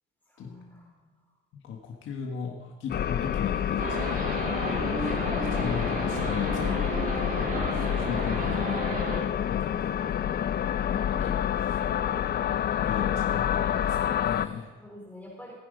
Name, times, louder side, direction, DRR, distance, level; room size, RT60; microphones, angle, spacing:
voice 1, 0.3-1.2 10.7-11.9 14.8-15.6, left 2 dB, 10° left, -3 dB, 3.5 m, -46 dB
voice 2, 1.5-9.0 9.5-9.9 10.9-12.4 12.8-14.7, left 7 dB, 75° left, 1 dB, 1.7 m, -37 dB
sound 1, 2.9-14.5, left 9 dB, 55° left, 0.6 m, -28 dB
sound 2, 3.8-9.2, right 2 dB, 45° right, 3.7 m, -33 dB
16.5 x 9.5 x 5.2 m, 1.2 s
cardioid pair, 90°, 20 cm